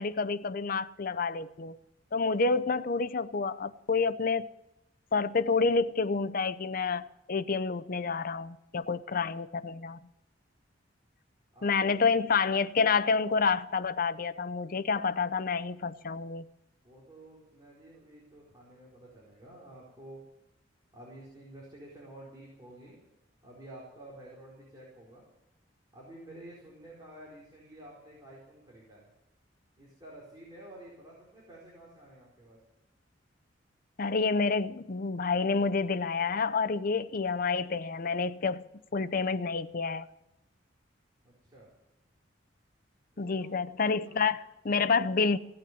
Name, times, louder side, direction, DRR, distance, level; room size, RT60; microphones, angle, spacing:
voice 1, 0.0-1.8 2.1-4.5 5.1-10.0 11.6-16.5 34.0-38.6 38.9-40.1 43.2-45.4, left 4 dB, 50° left, 0.6 m, -28 dB
voice 2, 11.5-12.1 16.8-20.3 20.9-23.0 23.4-25.3 25.9-29.1 29.8-32.6 41.2-41.7 43.1-44.2, right 1 dB, 20° right, 4.4 m, -50 dB
16.5 x 8.8 x 9.5 m
head